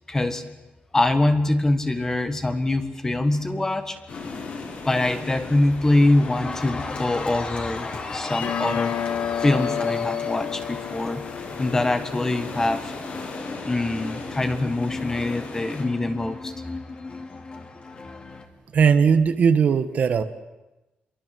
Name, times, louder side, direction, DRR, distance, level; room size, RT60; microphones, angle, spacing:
voice 1, 0.1-0.5 0.9-4.0 4.8-8.9 9.4-11.2 11.6-12.9 13.7-16.5, left 2 dB, 15° left, 9 dB, 1.6 m, -23 dB
Cheering, 3.6-4.0 4.3-18.5, left 3 dB, 30° left, 2.4 m, -37 dB
sound 1, 4.1-15.9, left 3 dB, 50° left, 6.8 m, -37 dB
sound 2, 8.3-13.4, left 9 dB, 65° left, 0.9 m, -31 dB
voice 2, 18.7-20.2, right 6 dB, 45° right, 10 dB, 1.3 m, -18 dB
27.5 x 23.0 x 7.8 m, 1.0 s
wide cardioid pair, 175°, 3 cm